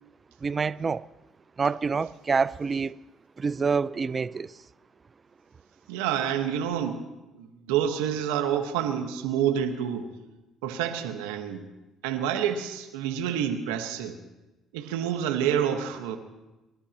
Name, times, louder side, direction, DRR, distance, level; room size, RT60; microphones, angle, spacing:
voice 1, 0.4-1.0 1.6-3.0 3.4-4.6, right 5 dB, 35° right, 0.4 m, -27 dB
voice 2, 5.9-7.0 7.3-10.0 10.6-11.6 12.0-14.2 14.7-16.2, right 9 dB, 90° right, 1.4 m, -28 dB
28.5 x 12.5 x 3.0 m
supercardioid pair, 70°, 0 cm